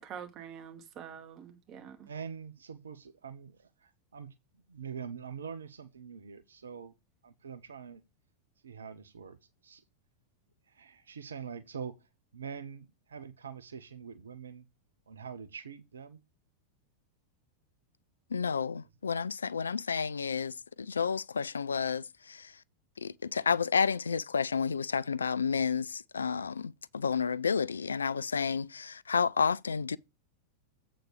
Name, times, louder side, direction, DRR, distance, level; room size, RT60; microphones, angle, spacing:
voice 1, 0.0-2.1, right 8 dB, 35° right, 2.4 m, -46 dB
voice 2, 2.1-4.3 4.7-6.9 7.2-8.0 8.6-9.4 9.6-9.8 10.7-12.0 12.3-14.7 15.1-16.2, right 6 dB, 70° right, 0.8 m, -44 dB
voice 3, 18.3-22.5 23.0-30.0, left 6 dB, 75° left, 0.4 m, -31 dB
8.1 x 4.1 x 6.4 m
figure-of-eight pair, 90°, 0 cm